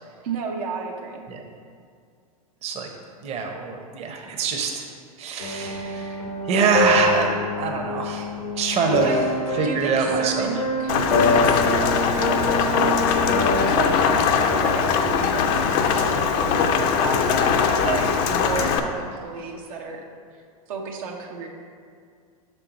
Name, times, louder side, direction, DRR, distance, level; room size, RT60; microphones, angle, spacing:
voice 1, 0.2-1.2 9.0-9.2 9.6-13.2 13.7-20.0 20.7-21.5, right 5 dB, 65° right, 1 dB, 0.7 m, -32 dB
voice 2, 3.2-4.9 5.2-6.2 6.5-8.3 8.6-9.3 9.5-10.5, right 5 dB, 35° right, 2 dB, 0.8 m, -24 dB
sound 1, 5.4-13.7, left 1 dB, 90° left, 1.1 m, -25 dB
Rain, 10.9-18.8, left 6 dB, 45° left, 0.5 m, -21 dB
5.9 x 4.5 x 4.0 m, 2.2 s
hypercardioid pair, 100°, 19 cm